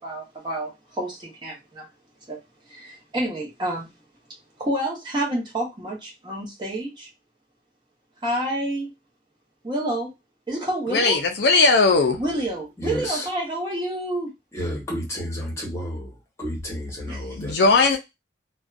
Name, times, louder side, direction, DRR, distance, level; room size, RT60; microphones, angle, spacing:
voice 1, 0.0-1.9 2.3-2.4 2.7-3.9 4.6-7.1 8.2-8.9 9.6-10.1 10.5-11.2 12.2-14.3 17.1-17.4, right 1 dB, 25° right, 0.9 m, -29 dB
voice 2, 10.9-12.2 17.4-18.0, left 3 dB, 60° left, 0.4 m, -18 dB
voice 3, 12.8-13.3 14.5-17.6, equal, 15° left, 1.0 m, -31 dB
2.5 x 2.2 x 2.3 m
head